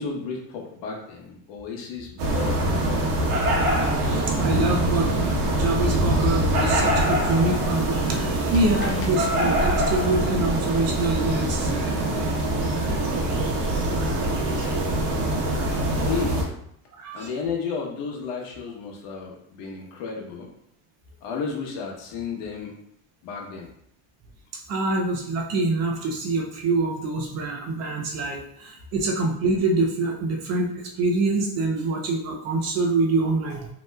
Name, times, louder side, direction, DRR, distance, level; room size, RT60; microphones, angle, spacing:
voice 1, 0.0-3.1 8.5-9.1 15.9-16.5 17.1-20.5 21.2-22.7 23.2-23.7, left 5 dB, 65° left, 0 dB, 0.9 m, -33 dB
sound 1, 2.2-16.4, right 1 dB, 65° right, 0.9 m, -23 dB
voice 2, 4.0-5.1 5.5-12.3 12.7-13.4 13.6-15.2 15.4-15.8 16.9-17.3 24.5-33.7, right 2 dB, 40° right, 2 dB, 0.4 m, -26 dB
3.2 x 2.9 x 2.2 m, 0.71 s
cardioid pair, 135°, 44 cm